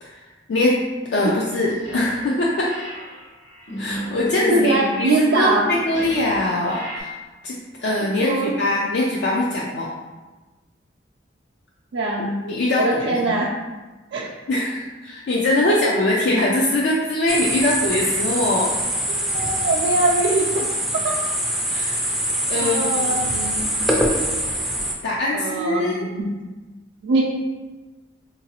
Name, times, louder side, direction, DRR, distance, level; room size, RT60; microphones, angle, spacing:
sound 1, 1.1-2.3 2.6-7.0, left 1 dB, 90° left, 0.8 m, -34 dB
voice 1, 1.1-2.7 3.8-7.2 7.4-9.9 12.2-13.4 14.5-18.8 21.7-22.0 22.5-23.7 25.0-26.0, left 1 dB, 70° left, -3 dB, 0.4 m, -22 dB
voice 2, 4.5-5.6 8.2-8.5 11.9-12.4 12.8-13.5 14.1-14.3 19.1-20.7 21.0-21.1 22.5-23.2 25.3-26.3 27.0-27.2, right 2 dB, 85° right, -5 dB, 0.4 m, -22 dB
sound 2, 17.3-24.9, right 1 dB, ahead, 0.3 m, -24 dB
3.8 x 2.6 x 2.8 m, 1.2 s
head